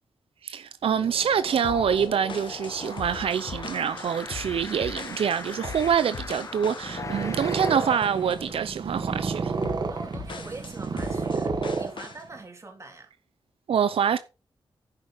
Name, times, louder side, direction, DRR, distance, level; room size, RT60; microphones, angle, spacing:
voice 1, 0.4-9.5 13.7-14.2, right 7 dB, 90° right, 0.7 m, -26 dB
sound 1, 0.9-8.0, left 3 dB, 35° left, 1.0 m, -41 dB
sound 2, 1.6-8.6 9.0-9.2 9.6-12.2, left 5 dB, 60° left, 1.8 m, -40 dB
Purr, 6.7-12.4, right 4 dB, 50° right, 1.5 m, -31 dB
voice 2, 7.2-7.7 9.9-13.1, right 3 dB, 30° right, 3.5 m, -43 dB
10.5 x 8.1 x 5.1 m
wide cardioid pair, 140°, 9 cm